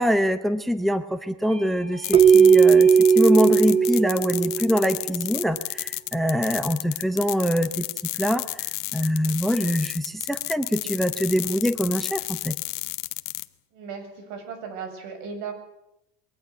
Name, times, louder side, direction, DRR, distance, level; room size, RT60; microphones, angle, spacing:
voice 1, 0.0-2.9 3.1-7.8 8.2-12.5, equal, ahead, 12 dB, 0.8 m, -24 dB
Bell / Doorbell, 1.4-6.6, right 2 dB, 45° right, 5.9 m, -47 dB
sound 1, 2.0-13.5, left 21 dB, 60° left, 1.1 m, -32 dB
Keyboard (musical), 2.1-5.0, right 6 dB, 20° right, 1.2 m, -17 dB
voice 2, 13.7-15.5, right 6 dB, 80° right, 7 dB, 7.3 m, -36 dB
22.5 x 19.0 x 8.1 m, 0.83 s
cardioid pair, 165°, 32 cm